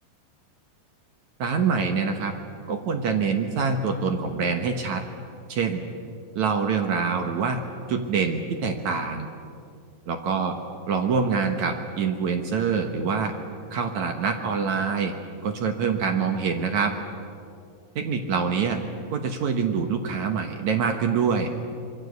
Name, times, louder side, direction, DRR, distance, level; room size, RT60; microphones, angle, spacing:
voice 1, 1.4-2.3 2.7-5.0 5.5-5.8 6.4-7.6 7.9-9.3 10.1-10.5 10.9-13.3 13.7-15.1 15.4-16.9 18.0-18.8 19.1-21.5, right 5 dB, 60° right, 5 dB, 2.3 m, -25 dB
25.5 x 22.5 x 8.2 m, 2.4 s
omnidirectional pair, 4.3 m